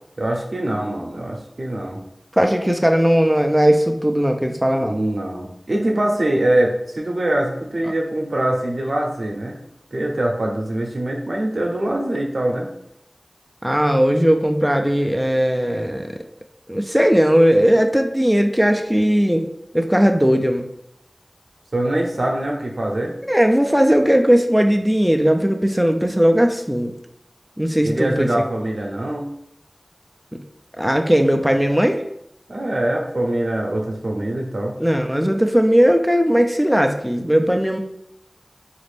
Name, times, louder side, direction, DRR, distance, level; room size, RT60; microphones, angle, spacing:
voice 1, 0.2-2.0 4.8-9.6 9.9-12.7 21.7-23.1 27.8-29.3 32.5-34.8, right 1 dB, 80° right, 0 dB, 0.6 m, -23 dB
voice 2, 2.3-5.0 7.9-8.0 13.6-16.2 16.7-19.5 19.7-20.7 23.3-26.9 27.6-28.3 30.3-30.4 30.8-32.0 34.8-37.8, equal, 5° right, 4 dB, 0.4 m, -17 dB
4.1 x 2.5 x 3.3 m, 0.78 s
wide cardioid pair, 55°, 0 cm